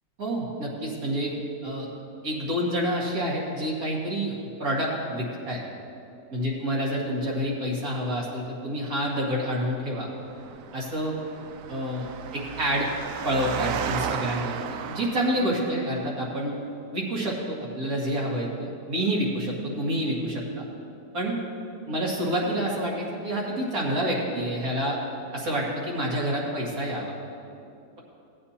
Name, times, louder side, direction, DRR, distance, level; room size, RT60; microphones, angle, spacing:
voice 1, 0.2-1.3 1.6-1.9 2.2-5.6 6.3-10.1 10.7-11.2 11.7-12.9 13.2-16.6 16.9-20.6 21.1-21.4 21.9-25.0 25.3-27.1, equal, 55° right, -4 dB, 2.3 m, -28 dB
Engine, 10.2-15.8, right 8 dB, 70° right, 0.8 m, -34 dB
17.5 x 8.8 x 2.8 m, 2.6 s
omnidirectional pair, 1.9 m